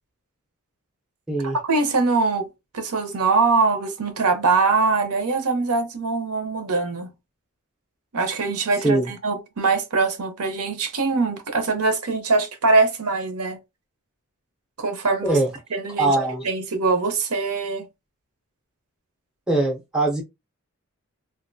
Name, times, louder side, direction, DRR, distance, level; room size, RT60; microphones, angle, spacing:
voice 1, 1.6-2.5 2.7-7.1 8.1-13.6 14.8-15.4 15.7-16.2 16.4-17.9, right 3 dB, 90° right, 0.8 m, -22 dB
voice 2, 16.0-16.5 19.5-20.2, right 2 dB, 5° right, 0.5 m, -21 dB
3.5 x 2.5 x 2.6 m
head